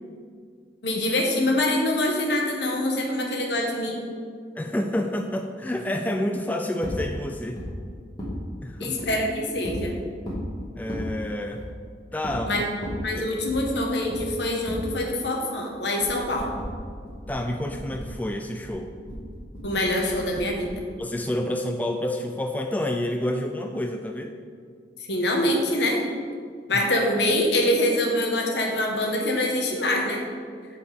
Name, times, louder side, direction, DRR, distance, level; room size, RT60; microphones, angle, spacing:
voice 1, 0.8-4.0 8.8-9.9 12.5-12.6 13.0-16.5 19.6-20.7 25.1-26.0 26.7-30.2, left 1 dB, 75° left, 1 dB, 1.3 m, -24 dB
voice 2, 4.6-7.6 8.6-9.0 10.8-11.6 12.1-12.6 13.2-13.3 17.3-18.9 21.0-24.3, left 1 dB, 10° left, 3 dB, 0.3 m, -29 dB
sound 1, 6.8-7.0 7.6-7.7 8.2-8.4 9.0-9.1 9.6-9.8 10.2-10.5 10.9-11.1 11.5-11.7 12.2-12.4 12.8-13.0 13.5-13.6 14.1-14.2 14.7-14.8 16.0-18.1 18.4-20.8, equal, 25° left, 2.0 m, -35 dB
8.2 x 4.6 x 5.2 m, 2.1 s
head